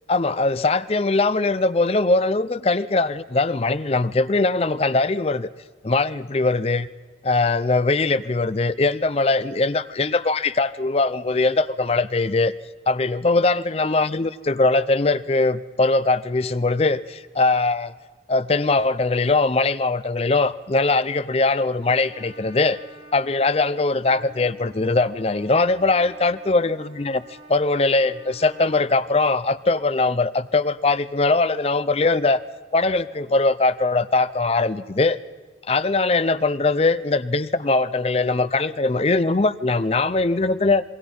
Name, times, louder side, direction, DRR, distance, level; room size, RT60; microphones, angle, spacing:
voice 1, 0.1-5.5 5.8-6.9 7.2-12.5 12.9-17.9 18.3-22.8 23.1-27.2 27.5-32.4 32.7-35.2 35.7-40.8, left 3 dB, 35° left, 0.5 m, -21 dB
Trumpet, 21.8-28.9, equal, 70° right, 6.2 m, -48 dB
27.0 x 20.5 x 5.5 m
head